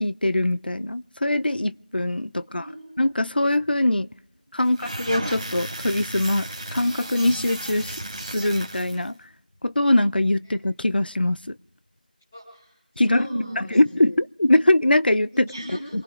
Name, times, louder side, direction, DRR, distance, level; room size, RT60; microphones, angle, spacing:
voice 1, 0.0-2.7 3.0-4.1 4.5-6.5 6.7-8.0 8.3-9.2 9.6-11.6 13.0-13.3 13.6-15.4 15.9-16.0, left 1 dB, 85° left, 15 dB, 0.6 m, -22 dB
voice 2, 2.4-2.9 10.5-10.6 12.3-14.0 15.3-16.0, equal, 10° left, -7 dB, 5.9 m, -37 dB
sound 1, 4.6-9.1, right 1 dB, 10° right, 2.3 m, -34 dB
27.0 x 18.5 x 2.5 m, 0.73 s
figure-of-eight pair, 180°, 5 cm